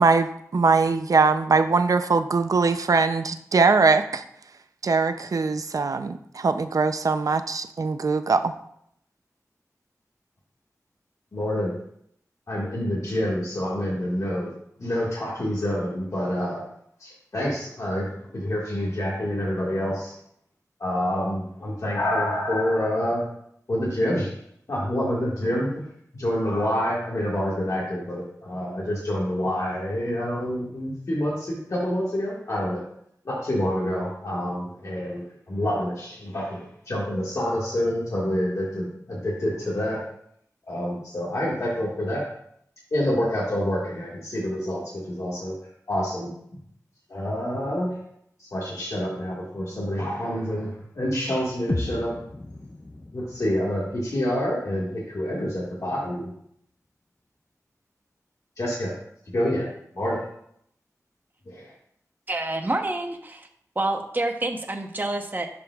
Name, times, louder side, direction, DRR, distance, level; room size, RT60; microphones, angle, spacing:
voice 1, 0.0-4.2 4.8-8.5, right 4 dB, 65° right, 10 dB, 0.5 m, -21 dB
voice 2, 11.3-11.8 12.5-14.5 14.8-16.6 17.0-18.1 18.3-20.1 20.8-23.3 23.7-24.3 24.7-25.9 26.1-32.8 33.2-40.0 40.7-42.3 42.9-45.5 45.9-46.3 47.1-48.0 48.4-52.1 53.1-56.3 58.6-58.9 59.2-59.7 59.9-60.2 61.4-61.7, equal, 60° left, -6 dB, 1.7 m, -27 dB
sound 1, 51.7-55.7, left 2 dB, 25° left, 0.4 m, -35 dB
voice 3, 62.3-63.5 63.8-65.5, right 2 dB, 30° right, 4 dB, 0.9 m, -28 dB
11.0 x 5.2 x 2.3 m, 0.72 s
wide cardioid pair, 80°, 6 cm